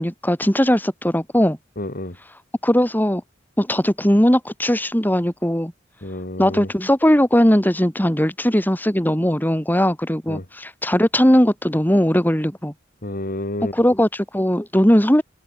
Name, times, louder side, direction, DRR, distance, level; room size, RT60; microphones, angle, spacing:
voice 1, 0.0-1.6 2.6-3.2 3.6-5.7 6.4-12.7 13.7-15.2, equal, 10° left, 4.9 m, -18 dB
voice 2, 1.8-2.2 6.0-6.7 10.3-10.5 13.0-13.7, left 1 dB, 45° left, 2.8 m, -29 dB
head